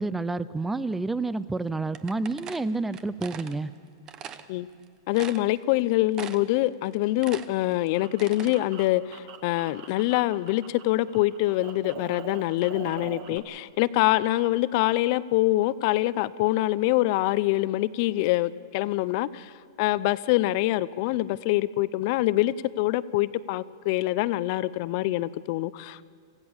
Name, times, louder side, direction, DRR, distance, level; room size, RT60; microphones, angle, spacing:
voice 1, 0.0-3.7, right 3 dB, 5° right, 17 dB, 0.5 m, -29 dB
sound 1, 1.9-3.6 4.1-4.5 4.8-4.9 5.1-5.8 6.1-6.6 6.9-8.6, right 8 dB, 25° right, 0.9 m, -41 dB
voice 2, 5.1-19.5 19.8-26.1, left 17 dB, 45° left, 18 dB, 0.6 m, -25 dB
sound 2, 7.5-10.8 11.1-13.4, right 8 dB, 50° right, 1.9 m, -43 dB
26.5 x 15.5 x 7.2 m, 2.2 s
hypercardioid pair, 145°, 2 cm